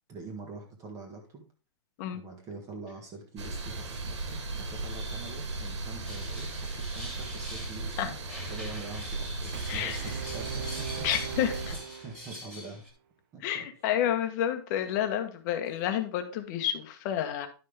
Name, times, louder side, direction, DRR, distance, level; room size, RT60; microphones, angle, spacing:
voice 1, 0.0-1.4 2.1-8.2 8.5-11.0 12.0-12.8 13.3-13.6, right 3 dB, 20° right, 2 dB, 1.6 m, -44 dB
sound 1, 3.4-11.8, right 2 dB, 85° right, 2.6 m, -37 dB
sound 2, 6.1-7.9 8.3-12.9, equal, ahead, 2.3 m, -45 dB
sound 3, 9.5-12.6, right 9 dB, 50° right, 1.0 m, -40 dB
voice 2, 9.7-10.1 11.0-11.7 13.4-17.5, left 10 dB, 40° left, 8 dB, 1.3 m, -30 dB
11.0 x 5.6 x 3.5 m, 0.36 s
hypercardioid pair, 150°, 15 cm